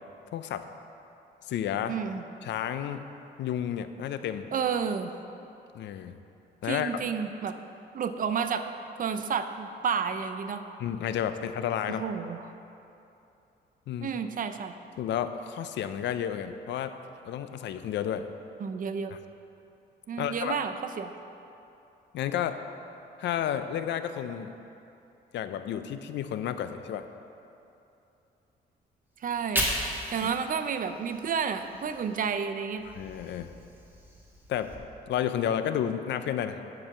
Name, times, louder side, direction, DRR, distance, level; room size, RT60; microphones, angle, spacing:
voice 1, 0.3-0.7 1.5-2.0 2.4-3.1 3.4-4.5 5.7-6.2 6.6-7.0 10.8-12.0 13.9-14.1 15.0-17.0 17.2-18.3 20.2-20.6 22.1-22.6 23.2-24.5 25.3-27.0 30.2-30.3 32.9-33.5 34.5-34.7 35.1-36.6, left 9 dB, 75° left, 10 dB, 0.5 m, -31 dB
voice 2, 1.9-2.2 4.5-5.1 6.6-7.5 7.9-8.7 9.0-10.6 12.0-12.4 14.0-14.7 18.6-19.1 20.1-21.1 29.2-29.7 30.1-32.8, right 6 dB, 50° right, 9 dB, 0.6 m, -31 dB
Fire, 29.2-32.3 32.7-34.8, equal, 10° right, 1.6 m, -36 dB
10.5 x 4.7 x 6.8 m, 2.8 s
cardioid pair, 110°, 18 cm